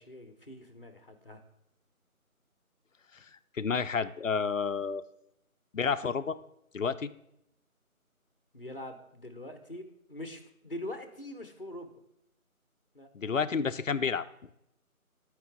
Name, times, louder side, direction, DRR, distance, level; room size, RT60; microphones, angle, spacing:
voice 1, 0.0-1.4 8.5-11.9 12.9-13.1, left 1 dB, 40° left, 7 dB, 0.9 m, -43 dB
voice 2, 3.6-5.0 5.7-6.4 6.7-7.1 13.1-14.2, left 5 dB, 65° left, 12 dB, 0.5 m, -30 dB
12.5 x 4.8 x 3.5 m, 0.80 s
figure-of-eight pair, 165°, 43 cm